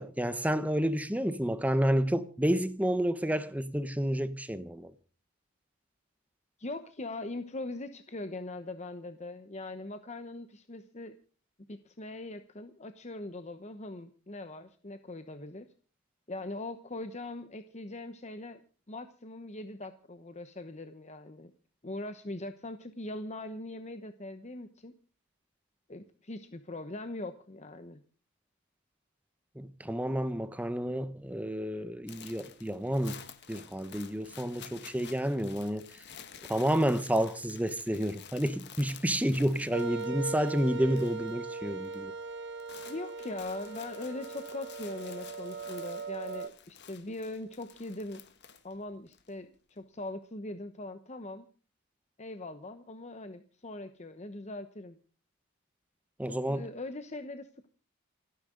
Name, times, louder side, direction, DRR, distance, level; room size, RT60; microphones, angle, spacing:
voice 1, 0.0-4.9 29.6-33.2 33.5-36.0 36.5-42.1 56.2-56.7, equal, 5° right, 0.9 m, -30 dB
voice 2, 6.6-11.2 11.7-15.7 16.3-18.6 18.9-21.5 21.8-24.9 25.9-28.0 42.9-48.2 48.6-51.5 52.2-55.0 56.2-57.7, left 2 dB, 30° left, 0.9 m, -41 dB
sound 1, 32.1-41.4 41.6-42.0 42.3-49.3, left 7 dB, 50° left, 1.7 m, -51 dB
sound 2, 39.7-46.5, right 4 dB, 50° right, 1.2 m, -39 dB
28.5 x 10.0 x 3.8 m
head